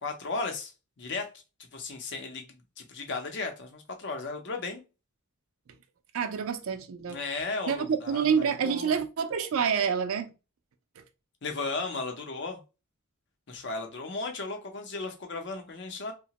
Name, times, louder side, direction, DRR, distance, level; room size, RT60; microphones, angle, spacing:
voice 1, 0.0-0.7 1.0-1.3 1.7-4.8 7.1-9.0 11.4-12.6 13.5-16.1, left 3 dB, 50° left, 0.6 m, -35 dB
voice 2, 6.1-7.2 7.7-10.3 11.0-11.1, right 7 dB, 65° right, 0.4 m, -27 dB
2.9 x 2.1 x 2.8 m
head